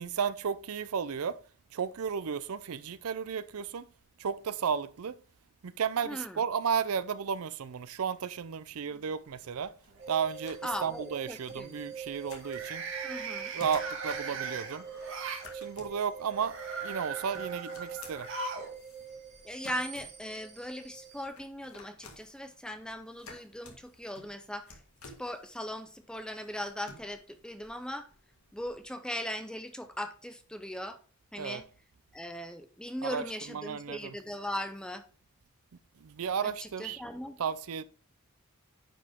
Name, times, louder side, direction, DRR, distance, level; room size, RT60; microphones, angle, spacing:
voice 1, 0.0-1.4 1.7-3.9 4.2-5.2 5.6-9.7 10.1-12.8 13.5-14.9 15.5-18.3 31.4-31.6 33.0-33.2 33.5-34.2 36.0-37.0 37.4-37.8, right 7 dB, 80° right, 0.5 m, -33 dB
voice 2, 6.0-6.4 10.6-11.8 13.0-13.5 19.4-24.8 25.2-28.1 28.5-31.0 31.3-31.7 32.1-35.0 36.4-37.4, equal, 5° left, 0.5 m, -39 dB
sound 1, 8.9-9.5 9.9-10.3 12.4-15.5 16.3-18.7 19.0-19.1 20.2-20.3, right 4 dB, 60° right, 1.5 m, -39 dB
sound 2, 9.3-28.9, left 3 dB, 80° left, 1.9 m, -56 dB
sound 3, 10.0-21.2, right 6 dB, 35° right, 3.0 m, -44 dB
10.0 x 5.1 x 3.5 m
head